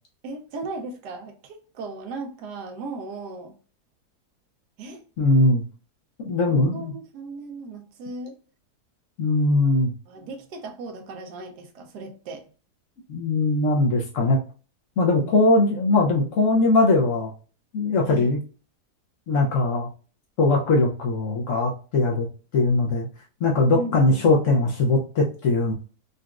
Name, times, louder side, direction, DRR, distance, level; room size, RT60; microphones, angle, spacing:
voice 1, 0.2-3.6 4.8-5.0 6.4-8.4 10.1-12.5 15.2-15.5 18.1-18.3 23.7-24.2, right 3 dB, 75° right, 1.2 m, -37 dB
voice 2, 5.2-5.6 6.2-6.9 9.2-9.9 13.1-14.4 15.0-17.3 17.7-18.4 19.3-19.9 20.4-22.3 22.5-23.1 23.4-25.7, left 2 dB, 65° left, 0.8 m, -20 dB
3.9 x 2.2 x 2.3 m
omnidirectional pair, 1.8 m